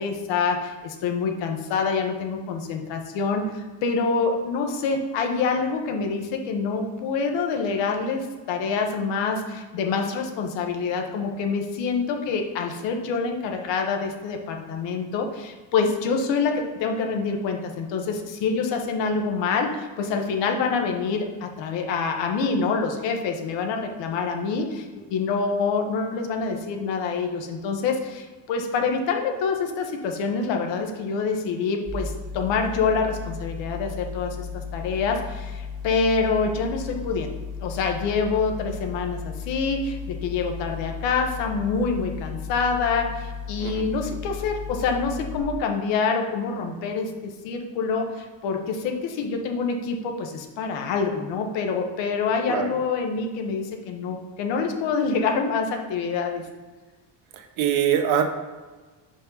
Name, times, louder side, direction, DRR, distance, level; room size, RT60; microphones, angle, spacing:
voice 1, 0.0-37.3 37.6-56.5, left 5 dB, 70° left, 3 dB, 1.2 m, -26 dB
sound 1, 31.9-45.4, left 6 dB, 55° right, 1.9 m, -35 dB
voice 2, 57.6-58.2, right 9 dB, 90° right, 5 dB, 1.1 m, -22 dB
5.8 x 5.2 x 3.9 m, 1.3 s
cardioid pair, 170°, 45 cm